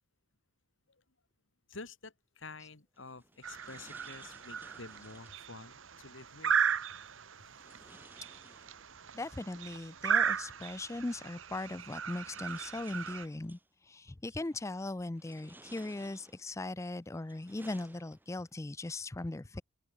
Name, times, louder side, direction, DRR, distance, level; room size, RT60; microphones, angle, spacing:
voice 1, 1.7-6.5, left 3 dB, 65° left, 2.1 m, -49 dB
sound 1, 2.9-5.5 7.5-9.1 10.5-10.6 11.6-13.7 14.3-14.7 15.1-16.6 17.1-18.5, right 2 dB, 10° right, 6.6 m, -58 dB
sound 2, 3.4-13.3, right 7 dB, 70° right, 1.2 m, -36 dB
voice 2, 9.1-13.6 13.9-19.6, left 2 dB, 15° left, 0.4 m, -39 dB
open air
head